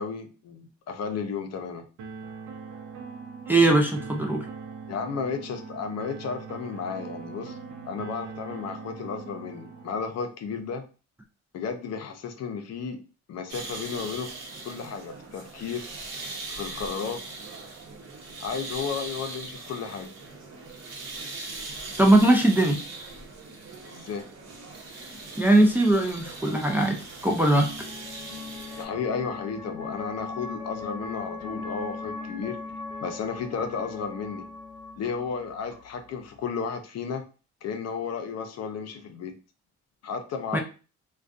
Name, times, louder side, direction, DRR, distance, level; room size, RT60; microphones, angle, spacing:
voice 1, 0.0-1.8 4.9-7.6 7.8-10.8 11.5-13.0 13.3-15.8 16.5-17.2 18.4-20.1 23.9-24.3 28.8-32.6 33.0-34.5 35.0-37.2 37.6-39.3 40.0-40.6, left 6 dB, 60° left, 6 dB, 0.5 m, -33 dB
sound 1, 2.0-10.0, right 5 dB, 85° right, 0.5 m, -41 dB
voice 2, 3.5-4.5 22.0-22.8 25.4-27.7 40.5-40.6, right 1 dB, 5° right, 1 dB, 0.4 m, -20 dB
sound 2, 13.5-28.8, right 3 dB, 60° right, 0.9 m, -40 dB
sound 3, 26.1-36.4, left 4 dB, 15° left, 1.0 m, -40 dB
2.5 x 2.2 x 2.4 m, 0.34 s
cardioid pair, 90°, 30 cm